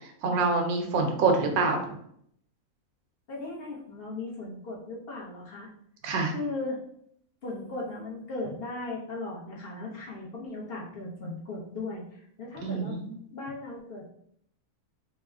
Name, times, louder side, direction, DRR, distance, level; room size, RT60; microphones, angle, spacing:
voice 1, 0.0-2.0 6.0-6.3 12.6-13.1, right 3 dB, 75° right, 4 dB, 1.1 m, -26 dB
voice 2, 3.3-5.7 6.3-6.8 7.4-13.0 13.3-14.1, left 2 dB, 50° left, -4 dB, 0.8 m, -37 dB
3.3 x 2.1 x 3.5 m, 0.69 s
omnidirectional pair, 1.6 m